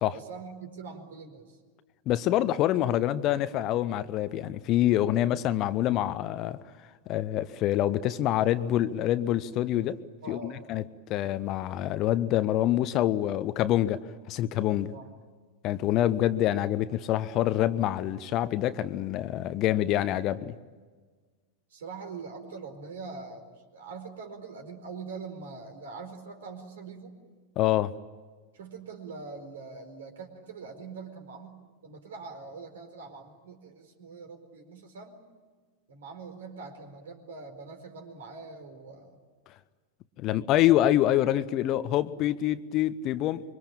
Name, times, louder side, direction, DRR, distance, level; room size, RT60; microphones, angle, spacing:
voice 1, 0.1-1.6 10.2-10.6 14.8-15.1 21.7-27.2 28.5-35.2 35.9-39.2, right 4 dB, 60° right, 4.5 m, -43 dB
voice 2, 2.1-10.0 10.3-10.8 11.1-14.0 14.3-14.9 15.6-20.5 27.6-27.9 39.5-39.6 40.2-43.4, left 13 dB, 35° left, 0.9 m, -26 dB
26.0 x 24.0 x 8.9 m
figure-of-eight pair, 90°, 0 cm